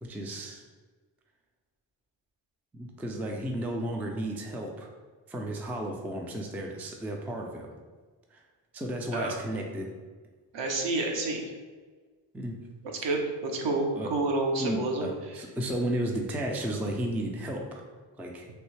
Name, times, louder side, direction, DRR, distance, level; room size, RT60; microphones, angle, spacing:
voice 1, 0.0-0.6 2.7-4.9 5.3-7.7 8.3-8.4 8.7-9.9 12.3-12.6 14.0-14.1 14.6-17.8 18.2-18.5, right 1 dB, 5° right, 1 dB, 0.3 m, -33 dB
voice 2, 10.5-11.5 13.0-15.4, right 2 dB, 60° right, 1 dB, 0.8 m, -29 dB
3.2 x 2.6 x 3.2 m, 1.4 s
supercardioid pair, 55°, 50 cm